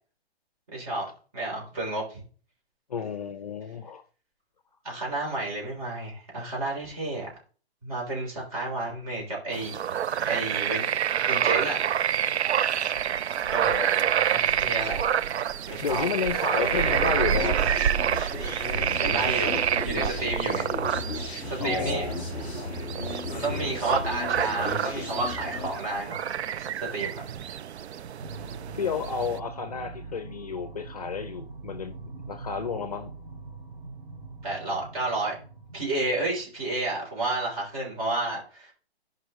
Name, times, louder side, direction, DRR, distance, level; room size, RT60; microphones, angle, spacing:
voice 1, 0.7-1.1 1.3-2.2 4.8-7.3 7.8-9.8 10.3-10.9 11.3-12.0 13.5-13.6 14.3-15.0 15.7-16.0 16.5-17.2 19.0-20.7 21.5-22.1 23.3-27.2 34.4-35.3 35.7-38.7, right 2 dB, 35° right, 3.8 m, -31 dB
voice 2, 2.9-4.0 6.4-6.5 13.6-14.3 15.8-17.8 21.6-22.2 28.7-33.1, left 6 dB, 35° left, 0.6 m, -32 dB
sound 1, 9.5-29.4, right 9 dB, 90° right, 0.6 m, -28 dB
sound 2, 16.9-25.7, left 2 dB, 5° right, 0.5 m, -35 dB
sound 3, 28.2-36.4, right 3 dB, 55° right, 1.3 m, -43 dB
11.5 x 5.5 x 3.1 m
hypercardioid pair, 175°, 32 cm